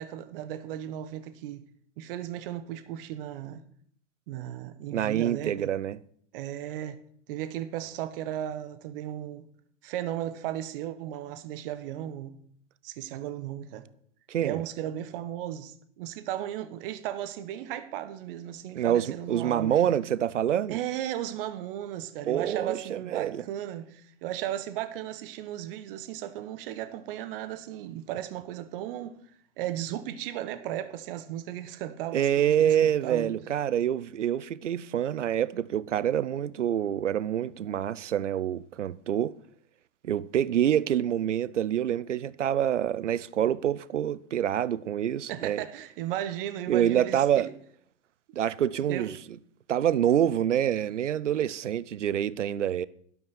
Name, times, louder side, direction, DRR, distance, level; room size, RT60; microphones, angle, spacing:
voice 1, 0.0-1.6 2.0-3.6 4.3-5.7 6.3-7.0 7.3-9.5 9.8-12.4 12.8-13.8 14.4-19.9 20.7-29.2 29.6-33.3 45.3-47.5 48.9-49.1, right 12 dB, 50° right, 1.4 m, -35 dB
voice 2, 4.9-6.0 14.3-14.6 18.7-20.8 22.3-23.4 32.1-39.3 40.0-45.7 46.7-47.5 48.3-49.1 49.7-52.9, right 10 dB, 75° right, 0.7 m, -26 dB
12.0 x 12.0 x 4.3 m
figure-of-eight pair, 105°, 36 cm